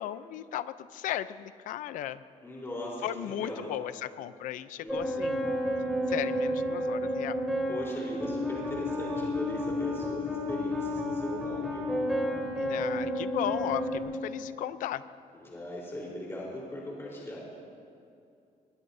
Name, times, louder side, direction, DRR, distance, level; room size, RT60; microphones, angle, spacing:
voice 1, 0.0-2.2 3.0-5.8 6.1-7.4 12.6-15.0, left 12 dB, 80° left, 14 dB, 0.6 m, -36 dB
voice 2, 2.4-3.8 4.8-5.4 7.7-11.9 15.3-17.4, left 1 dB, 20° left, -5 dB, 3.9 m, -39 dB
sound 1, 4.9-14.0, left 1 dB, ahead, 3.6 m, -31 dB
24.5 x 21.5 x 2.7 m, 2.6 s
cardioid pair, 145°, 13 cm